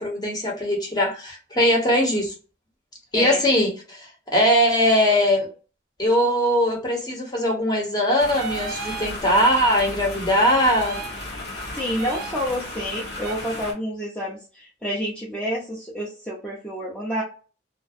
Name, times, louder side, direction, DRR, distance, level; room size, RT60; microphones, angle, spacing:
voice 1, 0.0-2.3 3.1-5.5 6.0-11.0, equal, 20° left, -1 dB, 0.8 m, -21 dB
sound 1, 8.2-13.7, left 1 dB, 60° left, 0.9 m, -35 dB
sound 2, 8.3-9.2 10.6-11.2 12.0-12.4 13.2-13.4, right 5 dB, 55° right, 0.3 m, -34 dB
voice 2, 11.7-17.2, equal, 5° left, -6 dB, 0.5 m, -29 dB
2.4 x 2.1 x 2.6 m, 0.36 s
head